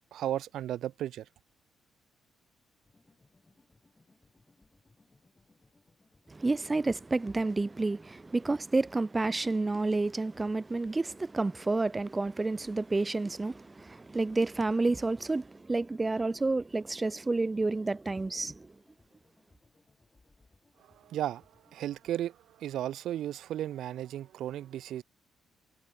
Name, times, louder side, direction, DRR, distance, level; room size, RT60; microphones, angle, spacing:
voice 1, 0.1-1.3 20.9-21.4 21.7-25.0, right 12 dB, 75° right, 0.5 m, -35 dB
sound 1, 2.8-22.1, left 3 dB, 20° left, 4.5 m, -67 dB
voice 2, 6.3-18.7, right 3 dB, 20° right, 0.5 m, -30 dB
cardioid pair, 90°, 0 cm